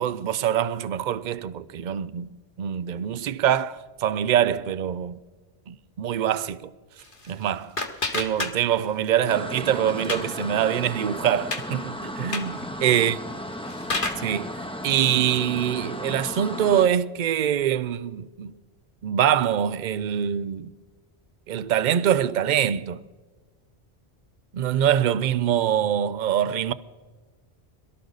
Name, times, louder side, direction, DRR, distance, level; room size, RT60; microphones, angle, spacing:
voice 1, 0.0-2.3 2.6-5.2 5.7-6.7 7.3-7.7 8.1-13.2 14.2-14.5 14.8-18.5 19.0-20.7 21.5-23.0 24.5-26.7, right 10 dB, 55° right, 0.6 m, -24 dB
sound 1, 7.0-9.0 9.3-10.4 10.8-10.9 11.2-11.7 12.2-12.6 13.3-14.3, left 3 dB, 55° left, 1.6 m, -31 dB
sound 2, 9.3-16.9, left 1 dB, 5° left, 0.8 m, -35 dB
23.0 x 13.0 x 4.0 m
omnidirectional pair, 1.1 m